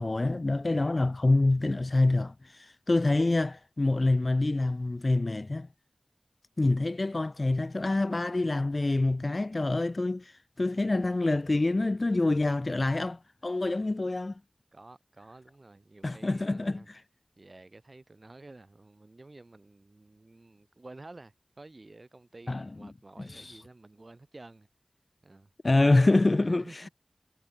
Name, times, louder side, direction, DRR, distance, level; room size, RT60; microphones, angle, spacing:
voice 1, 0.0-5.7 6.6-14.4 16.0-17.0 22.5-22.7 23.2-23.6 25.6-26.9, left 2 dB, 50° left, 1.1 m, -26 dB
voice 2, 14.7-16.9 17.4-24.7 25.2-26.9, right 2 dB, 50° right, 6.0 m, -51 dB
wide cardioid pair, 60°, 0 cm